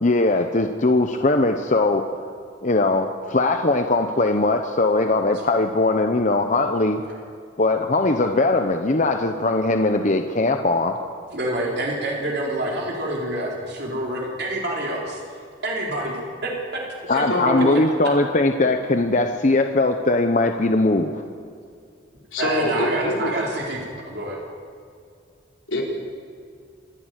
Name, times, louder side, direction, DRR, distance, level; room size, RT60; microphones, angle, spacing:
voice 1, 0.0-2.0 2.6-7.0 7.6-11.0 17.1-21.2, left 2 dB, 40° left, 6 dB, 0.8 m, -20 dB
voice 2, 11.3-15.2 15.6-16.8 17.1-17.8 22.4-24.4, right 1 dB, 55° right, -2 dB, 3.8 m, -27 dB
voice 3, 17.3-17.8 22.3-23.3 25.7-25.8, left 1 dB, 85° left, 0 dB, 4.0 m, -24 dB
26.5 x 11.0 x 9.2 m, 2.3 s
head